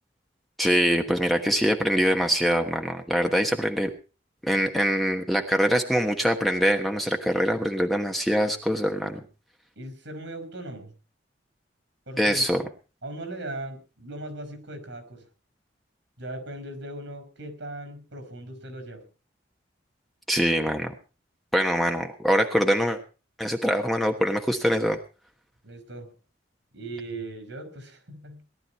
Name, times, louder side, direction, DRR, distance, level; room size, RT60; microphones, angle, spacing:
voice 1, 0.6-3.9 4.4-9.2 12.2-12.6 20.3-20.9 21.5-23.0 23.4-25.0, equal, ahead, 4 dB, 1.2 m, -23 dB
voice 2, 9.7-10.9 12.1-12.5 13.0-15.2 16.2-19.0 25.6-26.1 26.7-28.4, right 1 dB, 80° right, 8 dB, 5.1 m, -38 dB
18.5 x 12.0 x 4.3 m, 0.34 s
head